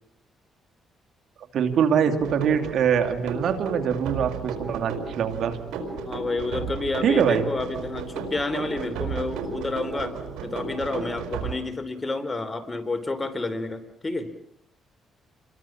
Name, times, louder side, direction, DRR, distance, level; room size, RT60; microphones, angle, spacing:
voice 1, 1.5-5.6 7.0-7.5, right 7 dB, 65° right, 7 dB, 2.6 m, -23 dB
sound 1, 2.2-11.5, right 5 dB, 90° right, 4.8 m, -34 dB
voice 2, 6.0-10.2 10.4-14.3, left 2 dB, 20° left, 9 dB, 3.4 m, -30 dB
28.5 x 23.0 x 7.2 m, 0.71 s
cardioid pair, 90°, 0 cm